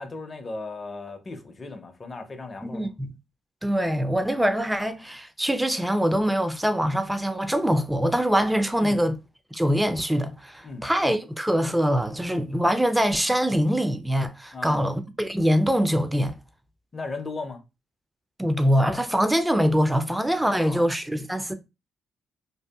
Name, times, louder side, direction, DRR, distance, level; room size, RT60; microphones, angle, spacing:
voice 1, 0.0-2.9 8.8-9.0 10.6-10.9 14.5-14.9 16.9-17.6 20.5-20.9, left 3 dB, 40° left, 0.6 m, -36 dB
voice 2, 2.6-3.1 3.6-9.1 9.5-16.4 18.4-21.5, equal, 10° right, 0.4 m, -23 dB
2.6 x 2.4 x 2.3 m
supercardioid pair, 50°, 0 cm